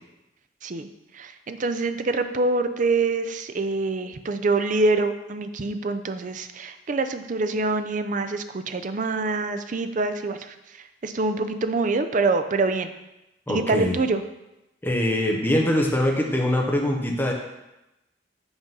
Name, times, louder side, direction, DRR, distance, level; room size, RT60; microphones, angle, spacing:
voice 1, 1.1-12.9 13.5-14.2, right 3 dB, 45° right, 9 dB, 0.5 m, -25 dB
voice 2, 13.5-14.0 14.8-17.3, left 1 dB, 10° left, 0 dB, 0.9 m, -23 dB
7.9 x 3.8 x 5.4 m, 0.95 s
head